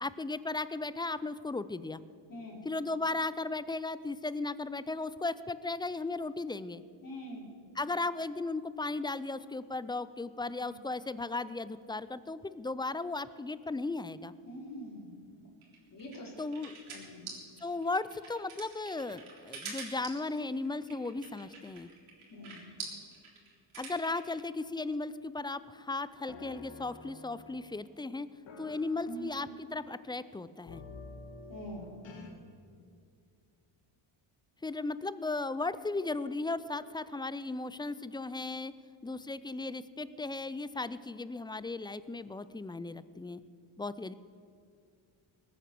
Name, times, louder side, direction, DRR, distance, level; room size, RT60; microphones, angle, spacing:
voice 1, 0.0-2.0 2.6-6.8 7.8-14.3 16.4-16.7 17.6-21.9 23.8-28.3 28.6-30.8 34.6-38.7 39.0-43.4 43.8-44.1, left 3 dB, 10° left, 15 dB, 0.3 m, -36 dB
voice 2, 2.3-2.7 7.0-7.5 10.6-10.8 14.4-15.2 15.9-16.3 16.9-17.3 22.3-22.7 29.0-29.3 31.5-32.0, equal, 40° left, -1 dB, 4.0 m, -44 dB
sound 1, 15.6-24.3, right 4 dB, 75° right, 3.7 m, -46 dB
sound 2, 26.3-27.9 28.5-30.0 30.6-32.3, left 3 dB, 60° left, 2.3 m, -49 dB
20.0 x 9.4 x 6.8 m, 2.3 s
cardioid pair, 105°, 49 cm